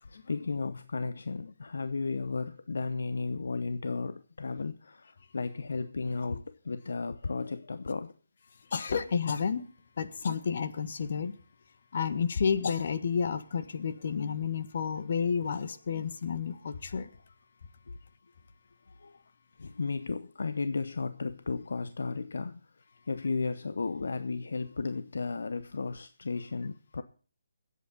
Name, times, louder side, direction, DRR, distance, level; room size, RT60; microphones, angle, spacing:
voice 1, 0.0-8.1 16.9-17.0 17.9-18.0 18.9-19.2 19.6-27.0, left 4 dB, 75° left, 0.8 m, -34 dB
voice 2, 8.7-9.6 10.0-11.3 11.9-17.1, left 6 dB, 55° left, 1.5 m, -30 dB
21.5 x 8.3 x 3.9 m
hypercardioid pair, 155°, 0 cm